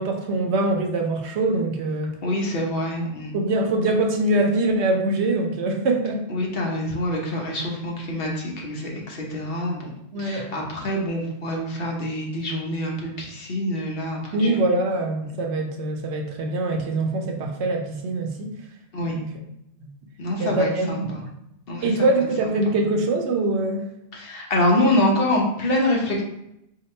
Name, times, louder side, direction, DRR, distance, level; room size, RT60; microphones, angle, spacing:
voice 1, 0.0-2.2 3.3-6.2 10.1-10.6 14.3-18.5 19.1-19.3 19.8-19.9 20.4-21.3 21.8-23.8, right 2 dB, 75° right, 3 dB, 1.0 m, -23 dB
voice 2, 2.2-3.3 6.3-9.9 10.2-14.5 18.9-19.2 20.2-21.2 21.7-21.9 24.1-26.2, left 1 dB, 55° left, -1 dB, 1.1 m, -25 dB
3.8 x 2.8 x 4.3 m, 0.80 s
omnidirectional pair, 1.2 m